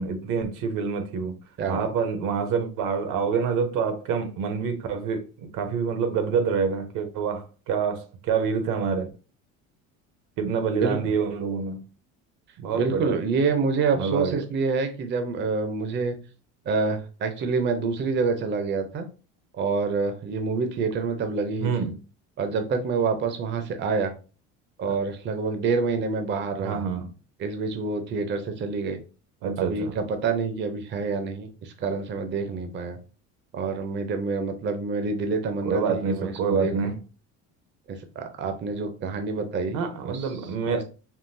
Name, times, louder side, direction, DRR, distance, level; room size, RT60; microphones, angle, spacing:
voice 1, 0.0-1.4 1.7-9.1 10.4-11.8 12.6-13.2 14.0-14.4 21.6-22.0 24.9-25.0 26.6-27.1 29.4-30.0 35.7-37.0 39.7-40.8, right 6 dB, 70° right, 0.8 m, -27 dB
voice 2, 1.6-1.9 10.8-11.0 12.7-16.2 16.7-19.1 19.5-21.7 22.4-24.1 24.8-26.8 27.4-29.0 29.6-33.0 33.5-36.9 37.9-40.3 40.7-40.8, right 4 dB, 35° right, 0.5 m, -27 dB
3.7 x 2.3 x 2.6 m
cardioid pair, 115°, 33 cm